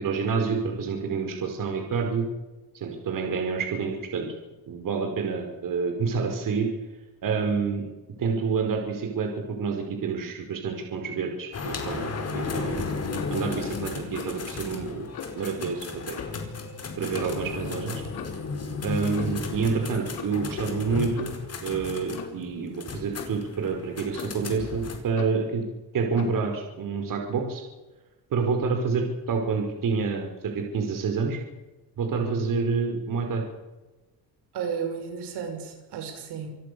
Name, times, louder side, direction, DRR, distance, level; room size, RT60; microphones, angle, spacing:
voice 1, 0.0-2.3 2.7-4.3 4.7-6.7 7.2-7.8 8.2-9.3 9.6-12.9 13.3-15.0 15.3-16.2 17.0-18.0 18.8-25.6 25.9-27.6 28.3-31.4 32.0-33.4, right 5 dB, 55° right, 4 dB, 5.3 m, -28 dB
sound 1, 11.5-25.0, left 4 dB, 40° left, 4.8 m, -34 dB
Clock, 12.1-12.4 13.1-13.4 14.1-14.4 15.1-15.5 16.1-16.4 17.1-17.4 18.1-18.5 19.1-19.5 20.1-20.5 21.2-21.4 22.1-22.4 23.2-23.4 24.1-24.5 25.2-25.4 26.2-26.4, left 7 dB, 70° left, 4.2 m, -40 dB
voice 2, 34.5-36.5, right 6 dB, 80° right, 4 dB, 6.3 m, -33 dB
27.5 x 17.5 x 7.0 m, 1.1 s
cardioid pair, 135°, 40 cm